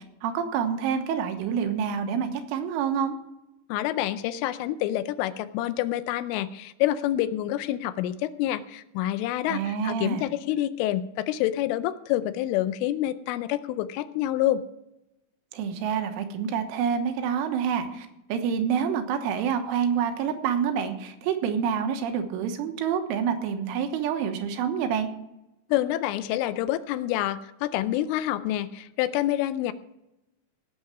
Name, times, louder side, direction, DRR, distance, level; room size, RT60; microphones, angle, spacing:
voice 1, 0.0-3.2 9.5-10.3 15.5-25.1, right 7 dB, 80° right, 7 dB, 3.6 m, -27 dB
voice 2, 3.7-14.6 25.7-29.7, left 13 dB, 80° left, 13 dB, 3.0 m, -27 dB
17.5 x 7.1 x 6.0 m, 0.90 s
omnidirectional pair, 5.9 m